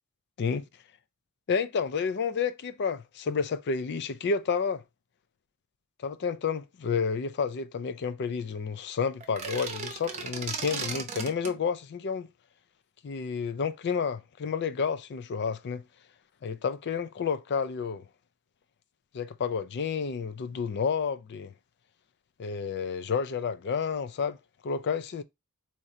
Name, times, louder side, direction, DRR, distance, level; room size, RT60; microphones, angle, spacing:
voice 1, 1.5-4.8 6.0-12.3 13.0-15.8 16.4-18.0 19.1-21.5 22.4-24.4 24.6-25.2, left 5 dB, 50° left, 0.4 m, -30 dB
sound 1, 9.2-11.6, right 5 dB, 30° right, 0.7 m, -36 dB
2.9 x 2.5 x 4.2 m
head